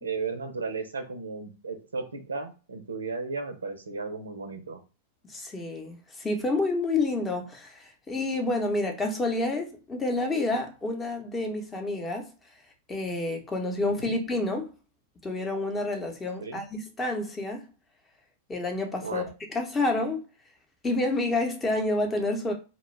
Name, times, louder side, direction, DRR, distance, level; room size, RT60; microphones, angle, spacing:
voice 1, 0.0-4.8 14.0-14.1 16.4-16.6 19.0-19.3, right 4 dB, 90° right, 0.5 m, -35 dB
voice 2, 5.2-12.3 12.9-14.7 15.2-17.6 18.5-20.2 20.8-22.5, left 2 dB, 20° left, 0.7 m, -29 dB
2.1 x 2.0 x 3.2 m
hypercardioid pair, 100°, 0 cm